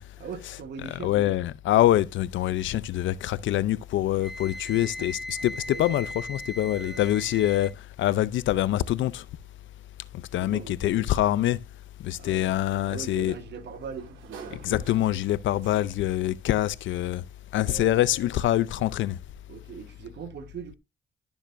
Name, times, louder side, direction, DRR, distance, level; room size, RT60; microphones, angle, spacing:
voice 1, 0.2-1.1 4.5-5.1 5.4-6.0 6.6-7.1 10.4-11.0 12.2-12.5 12.9-14.8 17.6-18.0 19.5-20.8, right 6 dB, 60° right, 1.3 m, -41 dB
voice 2, 1.0-7.7 8.0-9.2 10.3-11.6 12.0-13.3 14.6-17.2 17.5-19.2, left 13 dB, 75° left, 0.6 m, -25 dB
Wind instrument woodwind instrument, 4.2-7.7, left 1 dB, ahead, 0.6 m, -38 dB
Sliding door, 12.3-16.2, right 6 dB, 80° right, 2.3 m, -49 dB
12.0 x 7.0 x 2.6 m
cardioid pair, 90°, 20 cm